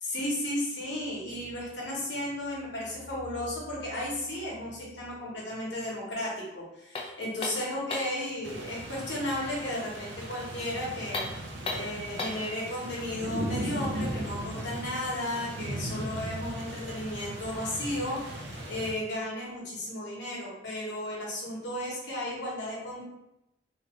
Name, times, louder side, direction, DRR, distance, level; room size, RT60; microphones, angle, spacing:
voice 1, 0.0-11.2 11.7-23.0, left 1 dB, 65° left, -4 dB, 1.1 m, -34 dB
sound 1, 6.9-8.2 11.0-12.5, left 2 dB, 30° left, 0.4 m, -35 dB
sound 2, 8.4-18.9, right 1 dB, 65° right, 0.5 m, -37 dB
2.7 x 2.5 x 3.1 m, 0.87 s
head